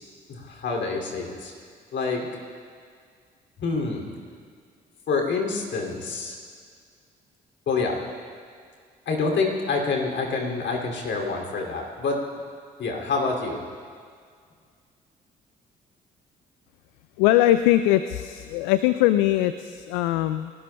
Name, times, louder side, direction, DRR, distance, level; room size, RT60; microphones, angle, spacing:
voice 1, 0.3-1.5 1.9-2.2 3.6-4.0 5.1-6.4 7.7-8.0 9.1-12.2 12.8-13.6, left 4 dB, 60° left, 1 dB, 2.7 m, -27 dB
voice 2, 17.2-20.5, left 14 dB, 80° left, 12 dB, 0.4 m, -21 dB
28.5 x 13.5 x 2.2 m, 2.1 s
hypercardioid pair, 50°, 21 cm